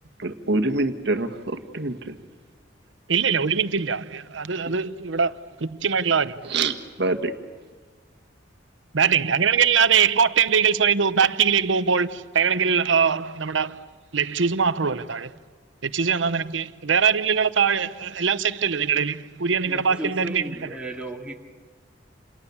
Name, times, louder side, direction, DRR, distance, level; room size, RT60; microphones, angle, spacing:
voice 1, 0.2-2.2 6.4-7.3, right 2 dB, 60° right, 1.7 m, -26 dB
voice 2, 3.1-6.5 8.9-13.8 14.1-15.3 15.8-20.7, right 6 dB, 80° right, 0.9 m, -22 dB
voice 3, 19.7-21.3, right 1 dB, 5° right, 2.6 m, -35 dB
28.5 x 28.0 x 7.2 m
head